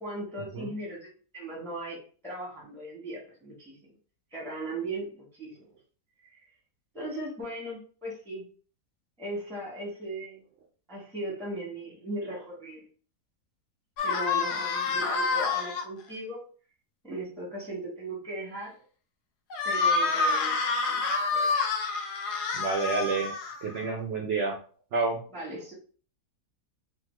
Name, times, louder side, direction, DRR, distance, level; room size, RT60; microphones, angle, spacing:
voice 1, 0.0-3.8 4.3-5.6 6.3-6.4 6.9-8.4 9.2-10.4 10.9-12.8 14.0-16.4 17.0-18.7 19.6-20.6 20.9-21.8 25.3-25.7, right 1 dB, 5° left, -3 dB, 0.5 m, -38 dB
sound 1, 14.0-15.8 19.5-23.8, left 4 dB, 75° left, 1.2 m, -28 dB
voice 2, 22.5-23.3 23.6-24.6 24.9-25.2, right 3 dB, 75° right, 1 dB, 0.6 m, -29 dB
3.3 x 2.0 x 3.1 m, 0.41 s
omnidirectional pair, 1.7 m